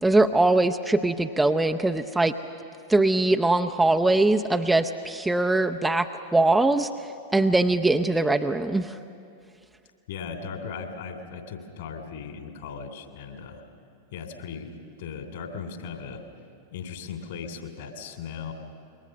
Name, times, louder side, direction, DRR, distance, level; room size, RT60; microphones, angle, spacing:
voice 1, 0.0-2.3 2.9-6.1 6.3-6.9 7.3-8.9, right 2 dB, 5° right, 6 dB, 0.7 m, -21 dB
voice 2, 10.1-13.6 14.1-14.7 15.0-16.2 16.7-18.5, left 6 dB, 55° left, 5 dB, 3.0 m, -37 dB
27.0 x 22.5 x 6.6 m, 2.5 s
figure-of-eight pair, 90°, 0 cm